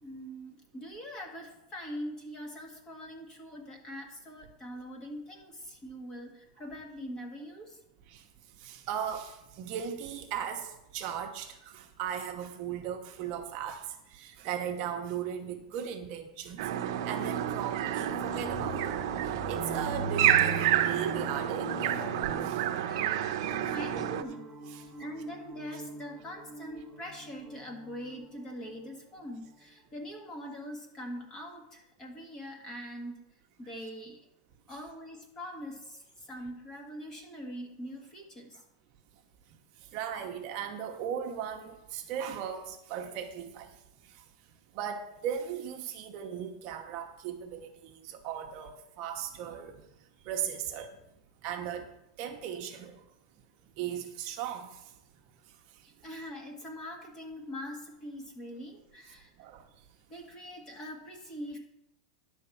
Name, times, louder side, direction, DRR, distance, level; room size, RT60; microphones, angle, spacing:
voice 1, 0.0-7.8 21.9-22.1 22.8-23.4 23.6-24.5 25.0-33.2 33.6-34.3 34.7-38.6 56.0-59.3 60.1-61.6, equal, 20° left, 2 dB, 1.7 m, -43 dB
voice 2, 8.6-16.6 17.0-22.1 22.5-22.6 23.6-23.7 39.9-43.7 44.7-49.7 50.2-50.9 51.4-51.9 52.2-53.0 53.8-54.8 59.4-59.6, right 8 dB, 40° right, 4 dB, 1.0 m, -37 dB
sound 1, 16.6-24.2, right 11 dB, 60° right, 0.7 m, -29 dB
sound 2, 19.5-29.4, right 3 dB, 15° right, 1.6 m, -42 dB
10.5 x 4.6 x 7.1 m, 0.85 s
supercardioid pair, 160°, 3 cm